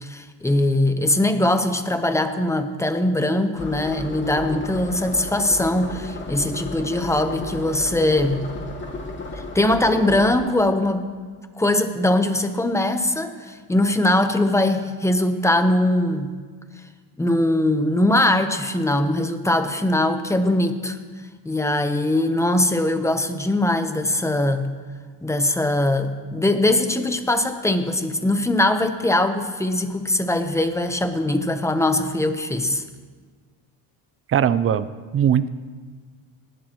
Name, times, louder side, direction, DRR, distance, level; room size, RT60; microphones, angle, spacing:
voice 1, 0.0-8.5 9.3-11.0 11.6-16.3 17.2-21.0 21.4-24.7 25.2-32.8, left 1 dB, 5° left, 8 dB, 0.9 m, -21 dB
sound 1, 3.5-10.4, left 2 dB, 25° left, 2.2 m, -34 dB
voice 2, 34.3-34.9 35.1-35.5, right 9 dB, 30° right, 15 dB, 0.5 m, -19 dB
19.0 x 11.5 x 3.1 m, 1.5 s
cardioid pair, 105°, 43 cm